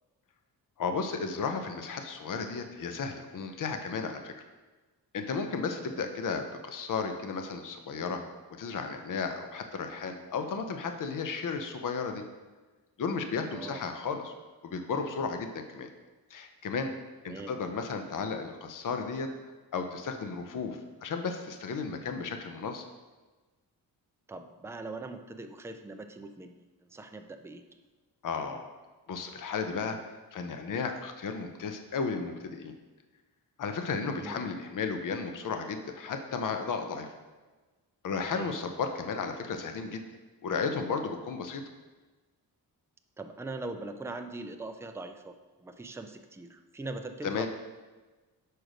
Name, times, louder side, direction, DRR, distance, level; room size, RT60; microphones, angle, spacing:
voice 1, 0.8-4.3 5.1-8.2 8.6-12.2 13.0-14.3 14.6-15.9 16.3-16.9 17.2-19.3 19.7-22.8 28.2-28.7 29.1-30.0 30.3-32.8 33.6-37.1 38.0-40.0 40.4-41.6 47.2-47.5, left 5 dB, 55° left, 6 dB, 0.7 m, -34 dB
voice 2, 13.5-13.8 17.3-17.6 24.3-26.6 26.9-27.6 34.0-34.4 38.4-38.6 43.2-47.5, right 2 dB, 5° right, 6 dB, 0.4 m, -41 dB
6.4 x 4.6 x 5.0 m, 1.2 s
wide cardioid pair, 135°, 39 cm